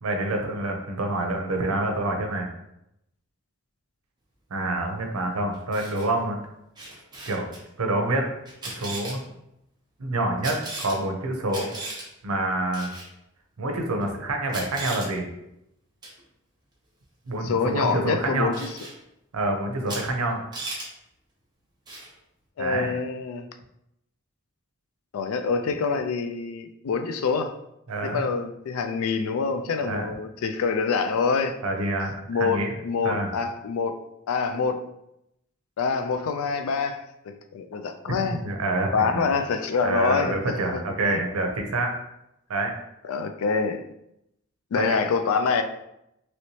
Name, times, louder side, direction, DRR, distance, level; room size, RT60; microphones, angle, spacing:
voice 1, 0.0-2.5 4.5-6.4 7.3-7.5 7.8-8.3 8.7-9.2 10.0-11.7 12.2-12.9 13.6-15.3 17.3-18.6 19.3-20.4 22.6-22.9 27.9-28.3 29.9-30.0 31.6-32.7 33.0-33.3 38.1-38.2 38.4-39.2 39.8-41.9 42.5-42.8 44.8-45.0, right 2 dB, 85° right, 0.6 m, -27 dB
Camera, 5.5-6.1 6.7-7.6 8.4-9.1 10.4-11.0 11.5-12.0 12.7-13.1 14.0-14.1 14.5-15.1 16.0-16.2 18.5-18.9 19.9-20.0 20.3-20.9 21.9-22.1, right 2 dB, 20° right, 0.8 m, -36 dB
voice 2, 17.4-18.6 22.6-23.5 25.1-27.5 28.0-31.6 32.3-34.0 34.3-34.8 35.8-38.4 38.9-40.4 41.0-41.2 43.0-43.8 44.7-45.6, left 5 dB, 80° left, 0.3 m, -26 dB
3.1 x 3.0 x 2.7 m
head